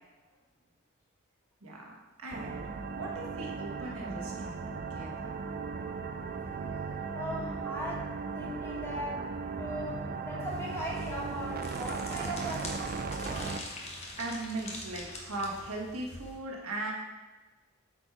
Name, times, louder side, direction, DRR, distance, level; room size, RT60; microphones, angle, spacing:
voice 1, 1.6-5.3 14.2-16.9, right 2 dB, 85° right, -2 dB, 1.6 m, -39 dB
sound 1, 2.3-13.6, right 4 dB, 45° right, 0.5 m, -37 dB
voice 2, 7.1-9.3 9.6-13.6, equal, 10° left, -6 dB, 2.2 m, -39 dB
sound 2, 10.5-16.4, left 2 dB, 30° left, 1.2 m, -45 dB
8.2 x 4.5 x 4.9 m, 1.2 s
head